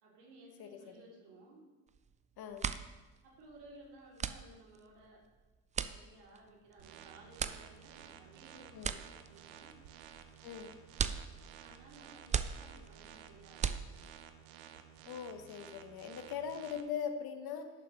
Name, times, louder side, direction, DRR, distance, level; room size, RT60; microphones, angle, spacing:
voice 1, 0.0-1.6 3.2-5.2 5.9-9.7 11.6-14.1, right 2 dB, 70° right, -2 dB, 2.9 m, -58 dB
voice 2, 0.6-0.9 2.4-2.7 8.7-8.9 10.4-10.7 15.1-17.7, left 7 dB, 55° left, 7 dB, 1.1 m, -41 dB
sound 1, 1.9-2.2 2.4-14.4, right 7 dB, 20° right, 0.3 m, -40 dB
sound 2, 6.8-16.8, right 9 dB, 85° right, 0.8 m, -54 dB
11.5 x 7.1 x 3.1 m, 1.2 s
hypercardioid pair, 70°, 44 cm